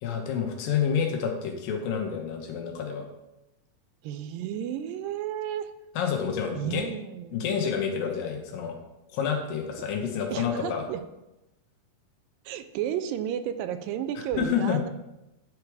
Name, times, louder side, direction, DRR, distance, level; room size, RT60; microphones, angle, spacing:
voice 1, 0.0-3.1 6.0-6.8 7.3-8.8 9.1-10.8 14.2-14.8, left 7 dB, 80° left, 3 dB, 2.8 m, -28 dB
voice 2, 4.0-5.7 6.6-7.3 10.3-11.0 12.5-14.9, right 10 dB, 80° right, 10 dB, 2.2 m, -32 dB
9.7 x 4.7 x 4.8 m, 0.95 s
omnidirectional pair, 4.0 m